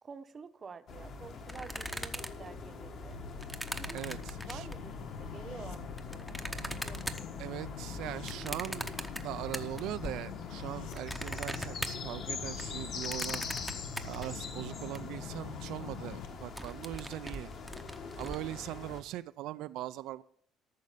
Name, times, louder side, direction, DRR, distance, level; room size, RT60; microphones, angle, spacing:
voice 1, 0.0-3.2 3.7-4.0 4.5-7.5 14.2-14.5, right 5 dB, 25° right, 10 dB, 0.8 m, -49 dB
sound 1, 0.9-19.0, left 4 dB, 50° left, 1.6 m, -44 dB
sound 2, 1.5-4.9 5.6-10.1 10.4-15.0 15.4-15.5 15.7-16.0 16.3-18.4, equal, ahead, 0.8 m, -41 dB
sound 3, 3.1-16.3, left 6 dB, 90° left, 1.1 m, -44 dB
voice 2, 3.9-4.7 7.4-8.9 9.2-13.4 14.0-17.5 18.2-20.2, right 15 dB, 75° right, 11 dB, 0.4 m, -40 dB
13.5 x 6.4 x 7.3 m, 0.62 s
cardioid pair, 155°, 0 cm